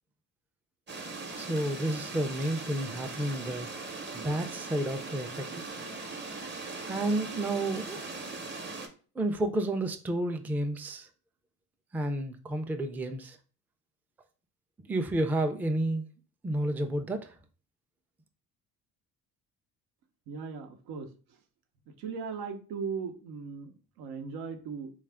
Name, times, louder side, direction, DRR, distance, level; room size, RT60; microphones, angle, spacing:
sound 1, 0.9-8.9, right 3 dB, 30° right, 0.8 m, -40 dB
voice 1, 1.3-3.7 4.1-5.7 6.9-8.1 9.2-11.1 11.9-13.4 14.9-16.0 16.4-17.3, right 1 dB, 5° right, 0.3 m, -31 dB
voice 2, 20.3-21.1 22.0-24.9, right 5 dB, 80° right, 0.7 m, -38 dB
3.5 x 2.3 x 3.3 m
supercardioid pair, 75°, 38 cm